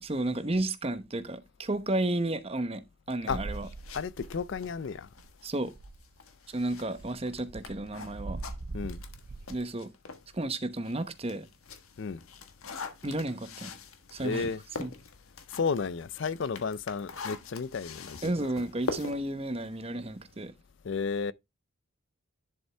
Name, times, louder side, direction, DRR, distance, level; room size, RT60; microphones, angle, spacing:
voice 1, 0.0-2.8 3.1-3.7 5.4-5.7 6.5-8.4 9.5-9.9 10.3-11.5 13.0-13.7 14.1-14.5 14.8-14.9 18.2-20.5, right 1 dB, 25° right, 0.9 m, -32 dB
sound 1, 3.2-4.9 5.2-5.3 5.6-6.1 6.6-9.6, right 3 dB, 50° right, 0.5 m, -42 dB
sound 2, 3.5-10.3 10.7-20.4, left 4 dB, 85° left, 1.4 m, -44 dB
voice 2, 3.9-5.1 8.7-9.0 12.0-12.2 14.2-14.6 15.5-18.5 20.8-21.3, left 5 dB, 55° left, 0.4 m, -32 dB
11.0 x 5.3 x 3.4 m
head